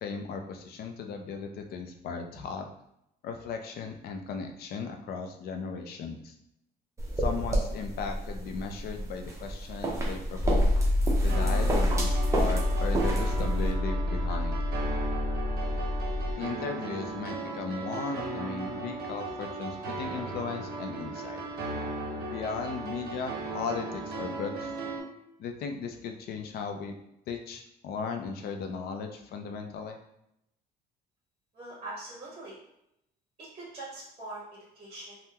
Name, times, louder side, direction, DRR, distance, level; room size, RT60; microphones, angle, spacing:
voice 1, 0.0-2.6 3.2-6.3 7.2-10.7 11.2-14.6 16.4-21.4 22.3-24.7 25.4-26.9 27.3-30.0, left 5 dB, 65° left, 4 dB, 0.5 m, -36 dB
sound 1, 7.0-13.7, right 1 dB, 15° right, 0.6 m, -31 dB
sound 2, 10.4-16.3, left 1 dB, 30° left, 0.8 m, -27 dB
sound 3, 11.3-25.0, right 3 dB, 65° right, 0.6 m, -36 dB
voice 2, 31.5-32.6 33.4-35.3, right 2 dB, 35° right, -5 dB, 1.0 m, -43 dB
3.4 x 2.1 x 2.8 m, 0.80 s
cardioid pair, 110°, 17 cm